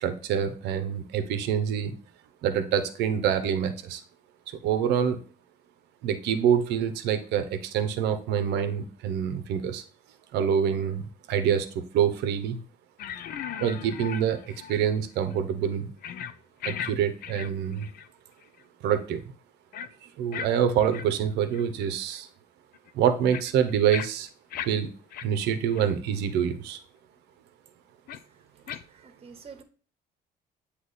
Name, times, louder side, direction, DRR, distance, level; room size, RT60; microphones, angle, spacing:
voice 1, 0.0-2.0 2.4-4.0 4.6-5.2 6.0-9.8 10.3-12.6 13.6-15.9 16.6-17.9 18.8-19.2 20.0-22.3 22.9-24.3 24.7-24.9 25.2-26.8, right 8 dB, 80° right, 9 dB, 0.8 m, -26 dB
sound 1, 13.0-14.9 15.2-15.4 16.0-16.4 16.6-16.9 17.2-18.1 18.4-18.6 19.7-19.9 20.3-20.5 20.9-21.1 21.5-21.6 22.2-22.3 22.7-24.7 25.1-25.3 25.7-25.8 26.4-26.5 28.1-28.2 28.7-28.8, left 9 dB, 60° left, 0.5 m, -37 dB
voice 2, 28.9-29.6, right 6 dB, 35° right, 6 dB, 1.1 m, -47 dB
7.8 x 3.0 x 4.0 m, 0.39 s
cardioid pair, 110°, 17 cm